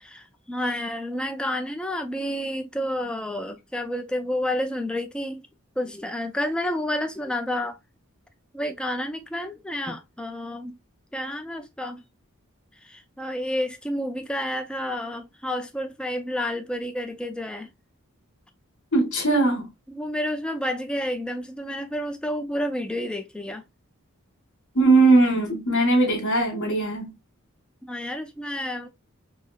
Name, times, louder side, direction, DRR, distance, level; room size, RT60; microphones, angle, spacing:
voice 1, 0.0-5.4 5.8-7.8 8.5-10.8 11.1-12.0 12.8-17.7 19.9-23.6 27.8-28.9, left 1 dB, 5° left, 0.4 m, -30 dB
voice 2, 18.9-19.7 24.7-27.1, right 2 dB, 65° left, 1.3 m, -20 dB
4.6 x 2.0 x 2.3 m
head